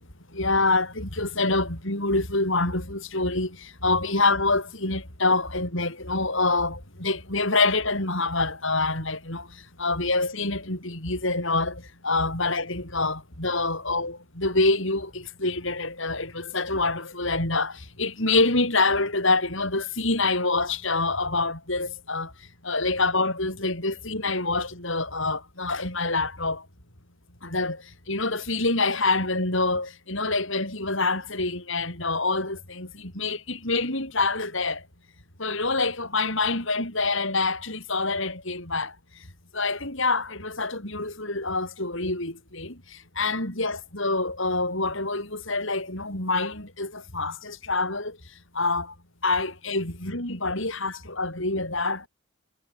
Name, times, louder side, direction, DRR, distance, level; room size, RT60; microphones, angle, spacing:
voice 1, 0.3-22.3 22.6-26.6 27.4-34.8 35.4-38.9 39.5-48.2 48.5-48.9 49.2-52.1, left 3 dB, 60° left, 6.6 m, -26 dB
head